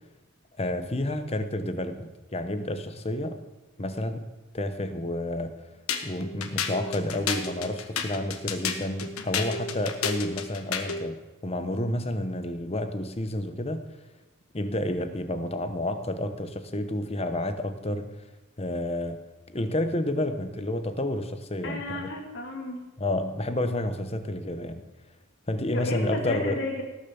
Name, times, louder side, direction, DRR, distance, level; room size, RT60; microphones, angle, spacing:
voice 1, 0.6-3.4 3.8-5.5 6.0-11.2 11.4-13.9 14.5-18.0 18.6-19.2 19.5-22.1 23.0-24.8 25.5-26.6, left 1 dB, 30° left, 9 dB, 1.0 m, -30 dB
sound 1, 5.9-11.0, left 6 dB, 85° left, 1.4 m, -31 dB
voice 2, 21.6-22.8 25.7-26.8, left 2 dB, 55° left, 0 dB, 2.8 m, -33 dB
18.0 x 6.9 x 7.0 m, 1.2 s
head